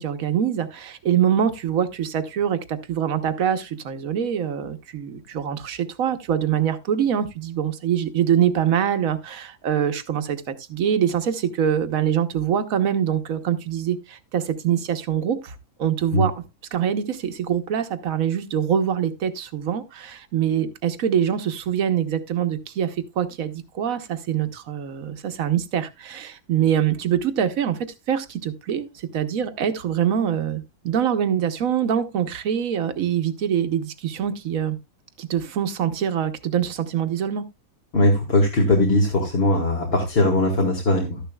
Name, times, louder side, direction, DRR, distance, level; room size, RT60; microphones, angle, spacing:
voice 1, 0.0-16.3 16.7-27.8 28.1-34.8 35.2-37.4, right 9 dB, 60° right, 1.3 m, -24 dB
voice 2, 37.9-41.2, left 2 dB, 40° left, 1.8 m, -20 dB
12.5 x 10.5 x 2.2 m
omnidirectional pair, 1.7 m